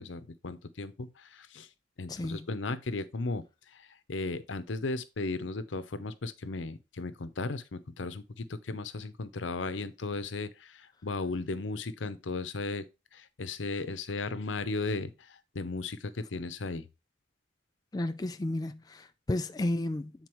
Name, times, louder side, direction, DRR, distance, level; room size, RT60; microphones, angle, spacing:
voice 1, 0.0-1.7 2.0-3.4 3.7-3.8 4.1-12.8 13.1-16.9, left 3 dB, 85° left, 0.8 m, -36 dB
voice 2, 2.1-2.4 17.9-20.1, left 1 dB, 20° left, 0.4 m, -32 dB
7.8 x 4.1 x 4.5 m
head